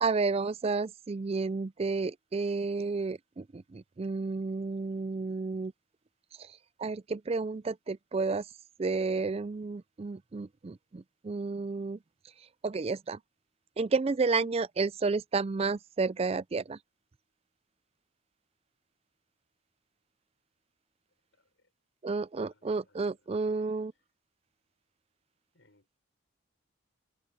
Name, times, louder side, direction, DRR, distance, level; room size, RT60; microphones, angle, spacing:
voice 1, 0.0-5.7 6.4-8.5 8.8-12.0 12.6-13.2 13.8-16.8 22.0-23.9, right 4 dB, 30° right, 0.3 m, -31 dB
voice 2, 22.4-23.1 23.5-23.8 25.5-26.0, left 2 dB, 60° left, 6.3 m, -67 dB
head